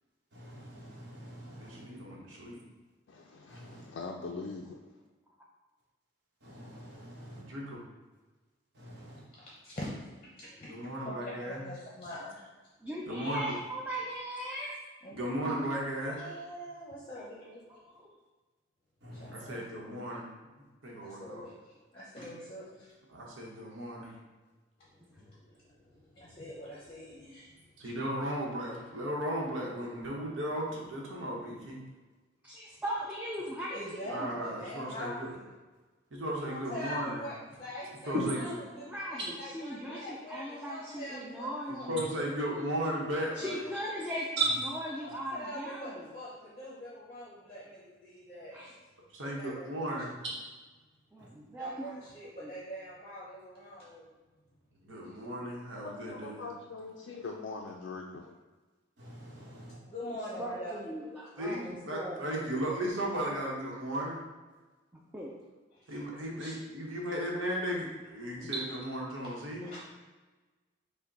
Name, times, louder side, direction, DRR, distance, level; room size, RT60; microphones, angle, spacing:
voice 1, 0.3-1.8 3.5-3.8 6.4-7.4 8.7-9.2 19.0-19.5 38.1-38.5 44.4-44.5 51.2-51.3 59.0-59.8, right 2 dB, 55° right, -5 dB, 1.3 m, -38 dB
voice 2, 1.6-2.6 7.4-7.8 10.7-11.6 13.1-13.5 15.1-16.2 19.3-20.3 20.8-21.5 23.1-24.2 27.8-31.8 34.0-35.3 36.1-37.2 38.1-38.4 41.9-43.6 49.1-50.1 54.8-56.4 61.4-64.2 65.9-69.8, equal, 85° right, -2 dB, 1.0 m, -36 dB
voice 3, 3.1-5.0 55.4-55.5 55.8-58.3, left 4 dB, 65° left, 0 dB, 0.4 m, -42 dB
voice 4, 9.3-9.9 10.1-12.5 13.2-13.3 15.0-15.7 16.0-17.6 19.1-19.7 21.0-23.0 24.8-27.9 33.7-35.5 36.4-41.5 41.7-41.9 42.1-42.3 44.9-48.7 49.2-50.0 51.6-54.1 55.1-55.2 59.9-60.8 65.7-66.0 68.4-68.5 69.7-69.8, equal, 30° left, -6 dB, 0.7 m, -44 dB
voice 5, 12.8-14.8 17.9-18.1 32.4-34.3 38.1-38.2 38.8-42.1 43.3-44.3 44.9-45.8 48.5-48.7 51.1-51.9 52.4-52.5 60.1-62.3 64.9-65.3 66.4-66.6 69.6-69.8, right 1 dB, 5° right, -4 dB, 0.4 m, -39 dB
5.6 x 2.2 x 3.9 m, 1.3 s
head